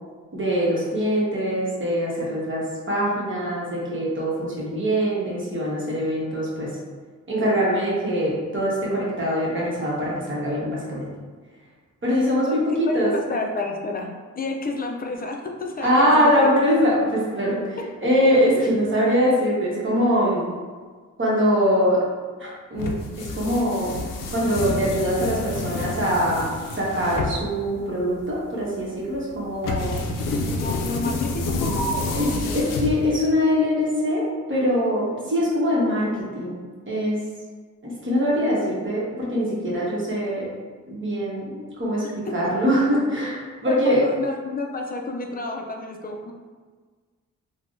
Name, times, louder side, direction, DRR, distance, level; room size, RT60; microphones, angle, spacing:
voice 1, 0.3-6.8 7.3-11.1 12.0-13.1 15.8-20.5 21.2-22.0 22.4-22.9 23.2-23.9 24.3-30.0 32.1-36.6 36.9-37.2 37.8-40.5 40.9-44.0, equal, 40° right, -6 dB, 1.2 m, -23 dB
voice 2, 12.5-16.5 18.6-18.7 30.2-32.6 42.0-42.5 43.7-46.3, left 3 dB, 30° left, 2 dB, 0.5 m, -31 dB
sound 1, 22.8-33.4, left 2 dB, 90° left, 0.5 m, -29 dB
3.4 x 2.2 x 2.6 m, 1.5 s
cardioid pair, 65°, 31 cm